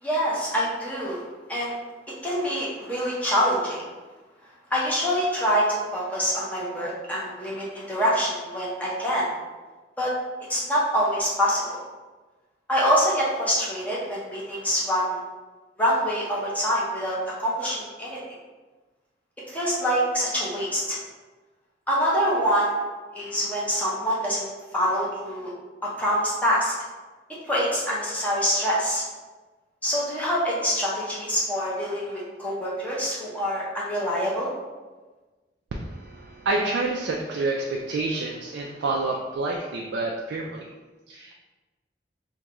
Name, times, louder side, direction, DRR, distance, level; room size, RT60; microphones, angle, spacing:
voice 1, 0.0-1.2 1.5-1.8 2.2-3.8 4.7-9.3 10.0-10.1 10.5-11.8 12.7-15.2 15.8-18.2 19.5-21.0 21.9-22.8 23.1-24.5 24.7-25.5 25.8-26.7 27.5-29.0 29.8-34.5, equal, 10° left, -6 dB, 0.7 m, -25 dB
voice 2, 35.7-40.7 41.1-41.3, right 2 dB, 80° right, -1 dB, 0.3 m, -28 dB
3.5 x 2.2 x 2.9 m, 1.2 s
head